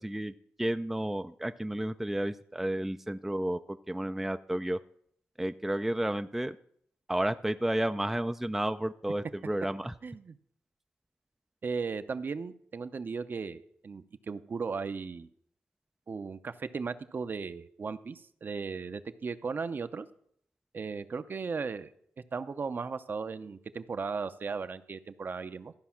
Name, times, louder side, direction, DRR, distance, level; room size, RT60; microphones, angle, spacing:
voice 1, 0.0-4.8 5.4-6.6 7.1-9.9, right 1 dB, 5° right, 9 dB, 0.4 m, -32 dB
voice 2, 10.0-10.4 11.6-15.3 16.1-20.1 20.7-21.9 22.3-25.7, right 5 dB, 45° right, 11 dB, 0.6 m, -36 dB
13.5 x 5.3 x 5.8 m, 0.67 s
cardioid pair, 75°, 5 cm